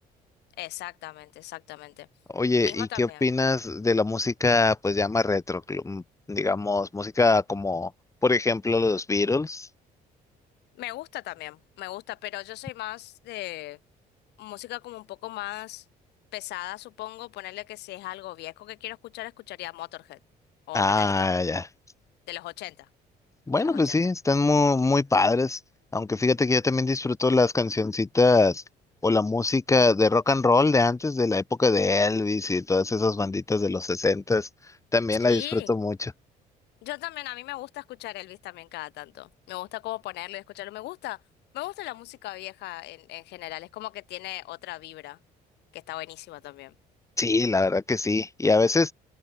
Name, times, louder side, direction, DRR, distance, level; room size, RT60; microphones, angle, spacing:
voice 1, 0.6-2.1 2.6-3.2 10.8-13.8 14.4-15.8 16.3-20.2 20.7-21.3 22.3-22.9 23.6-24.0 35.2-35.7 36.8-41.2 41.5-45.2 45.7-46.7, left 18 dB, 85° left, 7.0 m, -38 dB
voice 2, 2.3-6.0 6.3-7.9 8.2-9.7 20.7-21.7 23.5-25.6 25.9-28.6 29.0-34.5 34.9-36.1 47.2-48.9, left 3 dB, 20° left, 5.8 m, -23 dB
cardioid pair, 110°, 17 cm